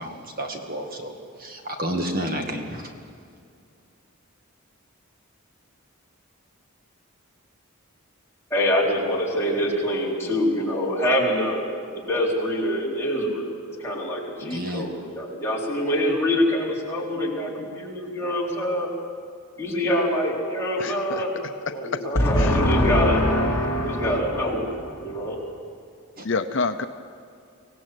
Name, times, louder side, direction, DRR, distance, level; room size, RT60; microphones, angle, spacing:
voice 1, 0.0-2.9 14.4-14.9 26.2-26.3, equal, 40° right, 3 dB, 2.1 m, -31 dB
voice 2, 8.5-11.7 11.9-18.9 19.6-21.3 21.7-25.4, equal, 10° left, -5 dB, 4.2 m, -24 dB
voice 3, 20.8-21.2 22.4-22.5 26.2-26.9, left 4 dB, 55° left, 7 dB, 0.7 m, -27 dB
25.0 x 18.0 x 7.9 m, 2.4 s
head